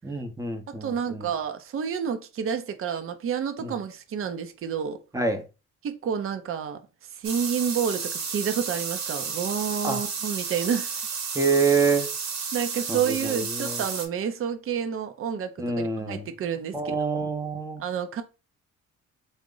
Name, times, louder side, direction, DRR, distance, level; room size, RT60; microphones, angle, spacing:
voice 1, 0.0-1.3 3.6-3.7 5.1-5.4 9.8-10.0 11.3-12.1 12.9-13.8 15.6-16.3 16.7-17.8, right 4 dB, 10° right, 0.7 m, -26 dB
voice 2, 0.7-5.0 5.8-11.1 12.5-17.1 17.8-18.2, right 7 dB, 45° right, 0.6 m, -29 dB
sound 1, 7.2-14.1, right 5 dB, 60° right, 1.0 m, -32 dB
3.6 x 2.1 x 3.8 m
cardioid pair, 90°, 30 cm